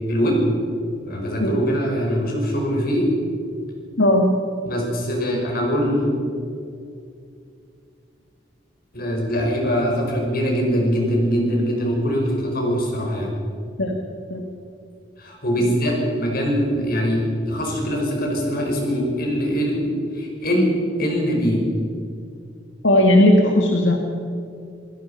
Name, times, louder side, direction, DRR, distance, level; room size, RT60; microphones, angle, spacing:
voice 1, 0.1-0.4 1.0-3.1 4.6-6.1 8.9-13.3 15.2-21.6, equal, 55° left, 0 dB, 5.6 m, -22 dB
voice 2, 22.8-24.0, left 1 dB, 85° left, 2 dB, 1.9 m, -16 dB
27.5 x 16.5 x 5.7 m, 2.4 s
head